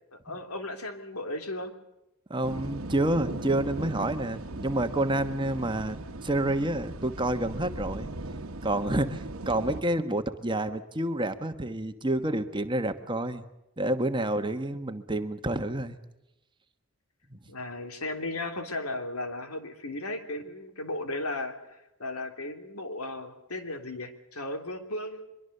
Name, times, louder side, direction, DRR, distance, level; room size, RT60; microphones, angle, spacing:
voice 1, 0.1-1.7 17.5-25.2, left 2 dB, 90° left, 6 dB, 3.0 m, -35 dB
voice 2, 2.3-8.1 8.6-13.4 13.8-16.0 17.3-17.4, right 1 dB, 20° right, 8 dB, 1.3 m, -29 dB
sound 1, 2.4-9.8, right 2 dB, 75° right, 1.2 m, -38 dB
24.0 x 23.0 x 6.7 m, 0.90 s
head